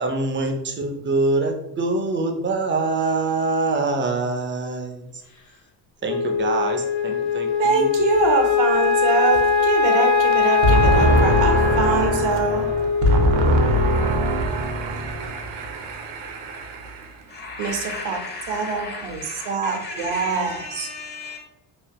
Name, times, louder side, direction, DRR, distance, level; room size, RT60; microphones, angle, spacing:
voice 1, 0.0-5.2 6.0-8.0, right 3 dB, 25° right, 0.5 m, -24 dB
Wind instrument woodwind instrument, 6.0-14.5, left 6 dB, 40° left, 0.6 m, -21 dB
voice 2, 7.6-17.2 17.6-18.2 18.5-20.9, right 2 dB, 65° right, 0.8 m, -22 dB
voice 3, 17.3-21.4, left 3 dB, 20° left, 1.0 m, -35 dB
3.3 x 2.6 x 2.3 m
supercardioid pair, 85°, 46 cm